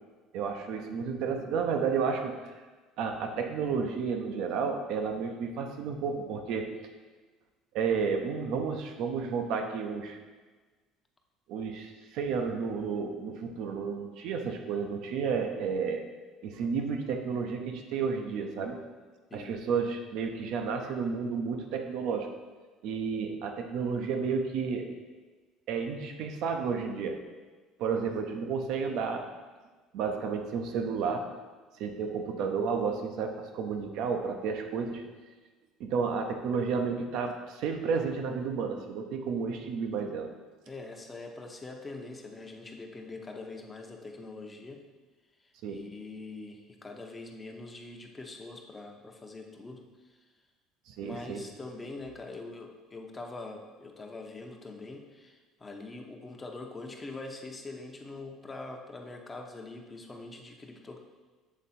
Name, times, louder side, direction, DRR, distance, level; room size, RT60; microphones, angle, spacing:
voice 1, 0.3-2.5 3.0-6.7 7.7-10.2 11.5-16.0 16.4-18.8 19.3-22.3 22.8-24.9 25.7-27.2 27.8-29.2 29.9-31.2 31.8-35.0 35.8-40.3 45.6-45.8 50.9-51.4, right 5 dB, 70° right, 5 dB, 0.7 m, -31 dB
voice 2, 40.7-44.8 45.4-50.2 51.0-61.0, left 3 dB, 20° left, 3 dB, 0.9 m, -43 dB
7.2 x 3.6 x 4.2 m, 1.4 s
supercardioid pair, 90°, 0 cm